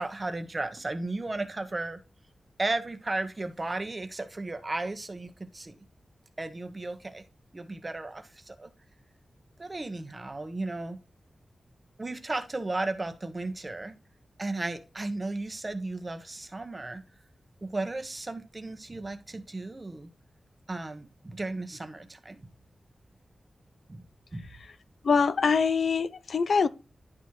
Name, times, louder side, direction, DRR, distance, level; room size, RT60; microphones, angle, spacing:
voice 1, 0.0-2.0 2.6-5.7 6.4-7.2 7.5-8.7 9.6-11.0 12.0-14.0 14.4-17.0 17.6-20.1 20.7-22.5 23.9-24.0 24.3-24.5, right 2 dB, 30° right, 1.2 m, -34 dB
voice 2, 25.0-26.7, left 5 dB, 75° left, 0.5 m, -24 dB
11.0 x 4.2 x 3.1 m
wide cardioid pair, 110°, 0 cm